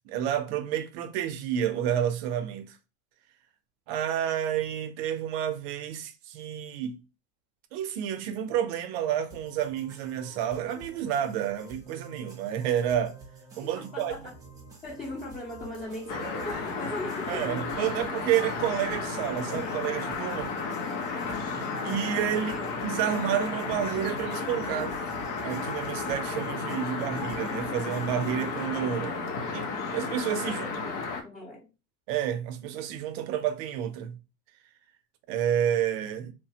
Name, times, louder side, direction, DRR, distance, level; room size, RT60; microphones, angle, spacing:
voice 1, 0.1-2.8 3.9-7.0 7.7-13.1 13.6-14.3 17.3-20.5 21.8-22.6 22.8-24.9 25.4-29.2 29.5-30.6 32.1-34.1 35.3-36.3, right 10 dB, 55° right, 0.5 m, -30 dB
sound 1, 9.3-28.5, right 1 dB, 10° right, 0.6 m, -49 dB
voice 2, 13.7-14.2 14.8-18.0 22.3-22.7 30.4-31.7, left 1 dB, 15° left, 0.8 m, -39 dB
sound 2, 15.6-23.5, left 2 dB, 90° left, 1.2 m, -52 dB
sound 3, 16.1-31.2, left 4 dB, 70° left, 0.8 m, -33 dB
3.2 x 2.0 x 2.7 m
supercardioid pair, 155°, 39 cm